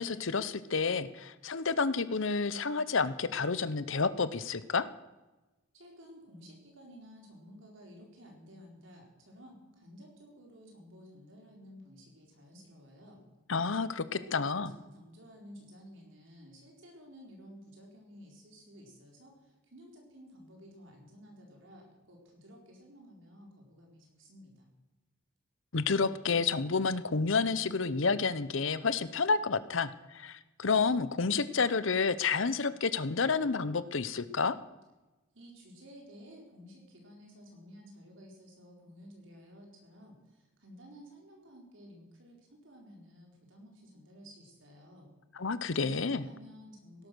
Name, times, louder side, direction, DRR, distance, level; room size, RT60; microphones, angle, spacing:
voice 1, 0.0-4.9 13.5-14.7 25.7-34.6 45.3-46.2, left 4 dB, 65° left, 15 dB, 0.8 m, -30 dB
voice 2, 5.7-13.2 14.2-24.7 35.3-45.1 45.7-47.1, equal, 65° right, 0 dB, 4.3 m, -53 dB
17.5 x 12.0 x 6.3 m, 1.1 s
head